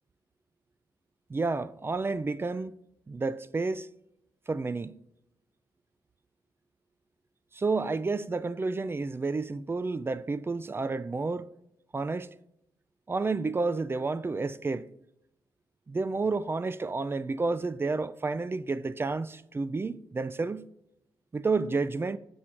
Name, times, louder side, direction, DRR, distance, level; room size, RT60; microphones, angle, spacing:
voice 1, 1.3-2.7 3.1-3.9 4.5-5.0 7.5-11.5 11.9-12.3 13.1-14.9 15.9-20.6 21.3-22.2, right 3 dB, 25° right, 0.3 m, -30 dB
7.1 x 4.9 x 4.4 m
cardioid pair, 75°, 9 cm